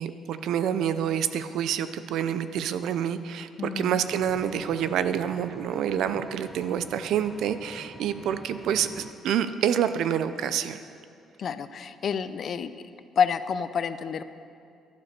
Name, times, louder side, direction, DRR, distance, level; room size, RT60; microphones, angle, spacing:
voice 1, 0.0-10.8, right 9 dB, 75° right, 12 dB, 0.6 m, -27 dB
voice 2, 3.6-4.0 11.4-12.7 13.2-14.2, left 7 dB, 45° left, 12 dB, 0.5 m, -28 dB
Engine, 4.1-9.1, equal, ahead, 0.7 m, -47 dB
11.5 x 11.5 x 6.7 m, 2.4 s
cardioid pair, 135°, 0 cm